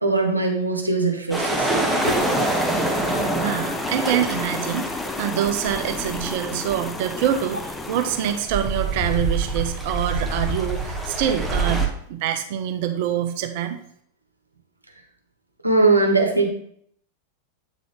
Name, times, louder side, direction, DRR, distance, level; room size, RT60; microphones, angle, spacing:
voice 1, 0.0-1.7 2.0-2.2 15.6-16.5, right 3 dB, 85° right, 2 dB, 0.9 m, -20 dB
sound 1, 1.3-11.9, right 2 dB, ahead, 0.9 m, -26 dB
sound 2, 2.0-8.4, left 4 dB, 15° left, 0.3 m, -32 dB
voice 2, 3.4-4.9 5.2-13.8, right 10 dB, 50° right, 7 dB, 0.6 m, -25 dB
8.0 x 3.8 x 3.3 m, 0.65 s
figure-of-eight pair, 90°, 0 cm